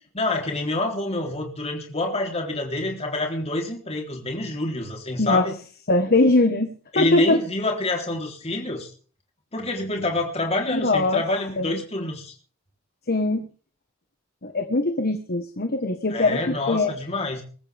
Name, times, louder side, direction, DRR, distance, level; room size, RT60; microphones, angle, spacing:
voice 1, 0.2-5.6 6.9-8.9 9.5-12.3 16.1-17.4, left 2 dB, 30° left, 1 dB, 3.7 m, -27 dB
voice 2, 5.2-5.5 5.9-6.7 6.9-7.4 10.7-11.2 11.6-11.7 13.1-13.5 14.4-16.9, left 2 dB, 50° left, 7 dB, 1.5 m, -21 dB
23.0 x 14.0 x 3.6 m, 0.41 s
head